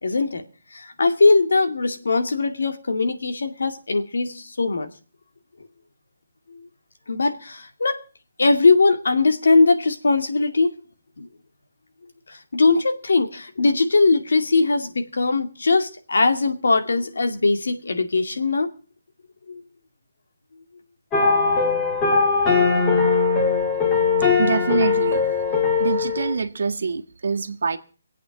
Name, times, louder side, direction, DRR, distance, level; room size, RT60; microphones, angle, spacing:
voice 1, 0.0-0.4 0.7-4.9 6.5-6.7 7.1-8.0 8.4-10.7 11.2-11.3 12.3-18.7 19.5-19.6, left 3 dB, 80° left, 2.4 m, -20 dB
sound 1, 21.1-26.4, left 5 dB, 10° left, 2.0 m, -20 dB
voice 2, 24.4-25.2 25.8-27.8, right 5 dB, 65° right, 1.5 m, -25 dB
23.0 x 8.5 x 6.0 m
hypercardioid pair, 170°, 0 cm